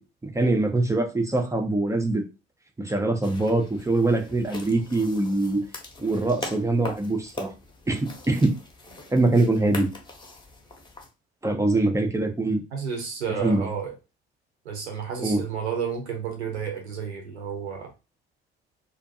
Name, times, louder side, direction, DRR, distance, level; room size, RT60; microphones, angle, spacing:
voice 1, 0.2-2.2 2.8-5.6 6.0-7.5 7.9-8.5 9.1-9.9 11.4-12.6 13.4-13.7 15.2-15.4, right 2 dB, 10° right, 3 dB, 0.5 m, -23 dB
sound 1, 3.2-11.1, left 2 dB, 15° left, 0.8 m, -41 dB
voice 2, 12.7-13.9 14.6-17.9, right 6 dB, 80° right, 2 dB, 0.7 m, -31 dB
2.5 x 2.2 x 2.6 m, 0.28 s
figure-of-eight pair, 55°, 33 cm